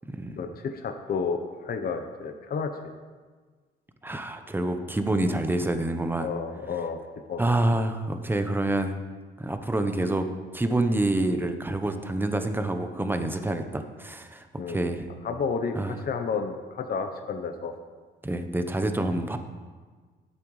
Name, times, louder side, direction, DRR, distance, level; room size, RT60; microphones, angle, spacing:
voice 1, 0.4-2.7 6.2-7.0 7.3-7.4 14.6-14.8 15.2-17.7, left 5 dB, 50° left, 6 dB, 0.8 m, -31 dB
voice 2, 4.0-6.3 7.4-8.9 9.4-10.3 10.5-15.1 15.7-16.0 18.2-19.4, right 1 dB, 10° right, 7 dB, 0.8 m, -27 dB
12.0 x 8.5 x 3.2 m, 1.4 s
cardioid pair, 90°, 20 cm